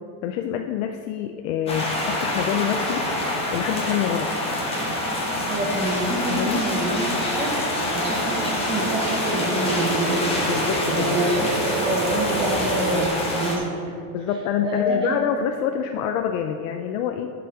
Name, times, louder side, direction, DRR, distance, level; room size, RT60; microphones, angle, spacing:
voice 1, 0.2-3.1 3.5-4.4 6.3-6.7 10.4-11.2 14.1-17.3, left 9 dB, 55° left, 5 dB, 0.5 m, -26 dB
sound 1, 1.7-13.6, left 1 dB, 10° left, 1.1 m, -26 dB
voice 2, 5.5-10.3 10.9-14.0 14.6-15.2, right 1 dB, 10° right, -2 dB, 1.0 m, -27 dB
sound 2, 6.7-13.1, right 3 dB, 55° right, 1.2 m, -30 dB
11.0 x 5.0 x 4.8 m, 2.4 s
supercardioid pair, 170°, 49 cm